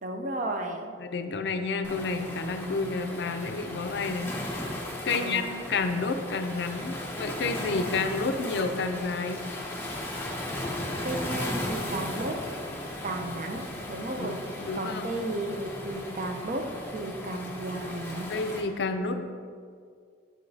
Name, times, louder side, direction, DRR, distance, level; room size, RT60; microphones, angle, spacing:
voice 1, 0.0-0.9 5.1-5.5 11.0-12.5 13.0-14.5 14.7-18.3, right 2 dB, 45° right, 4 dB, 0.5 m, -34 dB
voice 2, 1.0-4.6 5.0-9.4 14.2-15.1 18.3-19.2, left 4 dB, 70° left, 8 dB, 0.4 m, -30 dB
Waves surf, 1.8-18.6, left 1 dB, 10° left, 0.6 m, -36 dB
7.3 x 4.8 x 2.7 m, 2.1 s
head